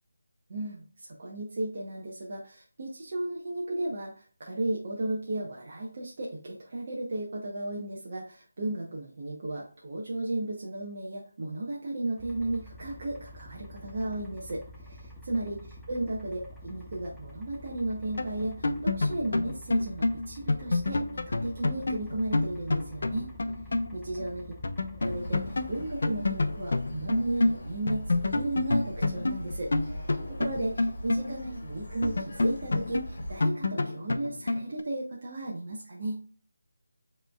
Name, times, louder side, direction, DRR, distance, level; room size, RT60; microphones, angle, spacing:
voice 1, 0.5-23.3 23.9-24.5 25.0-36.2, right 2 dB, 40° right, -3 dB, 0.8 m, -34 dB
sound 1, 12.2-25.9, equal, ahead, 0.7 m, -48 dB
sound 2, 18.2-23.9 24.2-24.3 24.6-27.6 27.9-31.6 32.0-34.8, left 2 dB, 60° left, 0.5 m, -28 dB
sound 3, 25.0-33.5, left 1 dB, 40° left, 1.6 m, -41 dB
7.4 x 3.1 x 2.3 m, 0.43 s
figure-of-eight pair, 170°, 0 cm